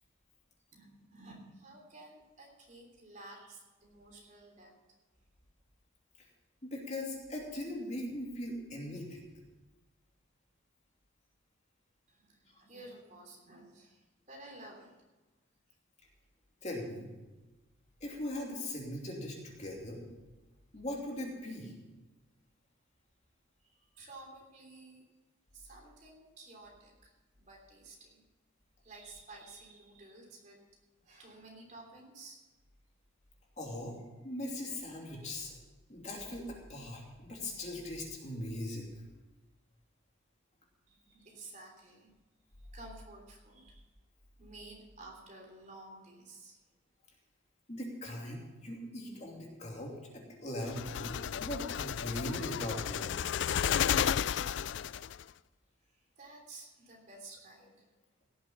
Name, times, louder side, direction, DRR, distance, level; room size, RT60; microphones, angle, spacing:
voice 1, 0.7-4.7 12.1-14.9 23.6-25.0 25.5-28.2 28.8-30.6 31.0-32.4 40.9-42.1 42.7-43.8 44.4-46.6 55.9-57.9, right 2 dB, 35° right, 0 dB, 3.3 m, -53 dB
voice 2, 6.6-9.3 12.5-12.6 16.6-17.1 18.0-20.0 20.7-21.7 33.6-35.6 35.9-38.9 47.7-53.4, left 1 dB, 35° left, -1 dB, 2.8 m, -40 dB
sound 1, 50.7-55.2, left 9 dB, 60° left, 0.3 m, -32 dB
17.0 x 7.4 x 7.0 m, 1.2 s
head